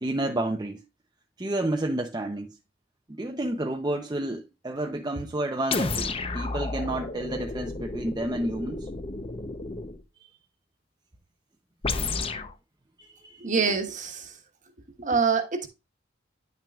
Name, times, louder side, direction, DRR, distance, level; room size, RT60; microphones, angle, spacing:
voice 1, 0.0-0.8 1.4-2.6 3.1-8.9 13.0-13.5, right 1 dB, 20° right, 0.7 m, -30 dB
sound 1, 5.7-10.0 11.8-12.5, left 3 dB, 30° left, 0.7 m, -32 dB
voice 2, 13.4-14.3 15.0-15.7, right 5 dB, 40° right, 1.4 m, -25 dB
10.5 x 6.0 x 2.4 m
head